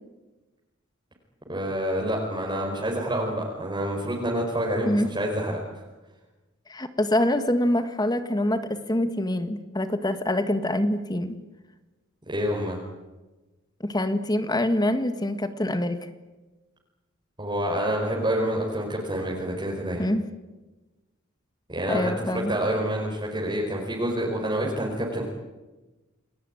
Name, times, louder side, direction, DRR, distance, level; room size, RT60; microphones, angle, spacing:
voice 1, 1.5-5.8 12.2-12.8 17.4-20.0 21.7-25.2, equal, 25° right, -2 dB, 4.9 m, -28 dB
voice 2, 6.7-11.4 13.8-16.0 20.0-20.3 21.9-22.5, left 1 dB, 20° left, 10 dB, 1.7 m, -25 dB
30.0 x 20.5 x 9.4 m, 1.1 s
head